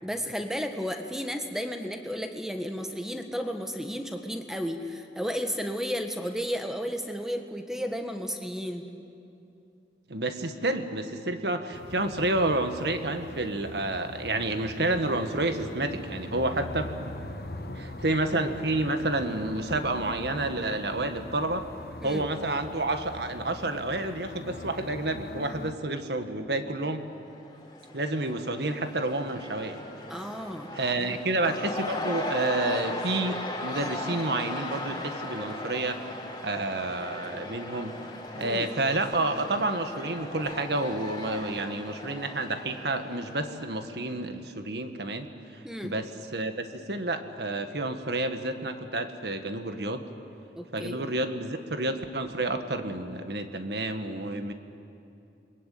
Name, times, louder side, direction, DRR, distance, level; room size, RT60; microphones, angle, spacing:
voice 1, 0.0-8.8 22.0-22.2 30.1-30.7 31.0-31.2 38.4-38.7 45.6-45.9 50.6-51.0, equal, 5° right, 5 dB, 1.6 m, -33 dB
voice 2, 10.1-16.9 17.7-21.6 22.0-27.1 27.9-29.8 30.7-33.4 33.6-36.0 36.4-38.0 38.3-45.3 45.8-50.0 50.7-54.5, right 2 dB, 75° right, 7 dB, 1.7 m, -29 dB
sound 1, 11.7-25.7, left 1 dB, 60° left, 1.2 m, -42 dB
Cheering / Crowd, 27.2-44.1, left 1 dB, 25° left, 3.7 m, -38 dB
29.5 x 22.0 x 8.5 m, 2.6 s
head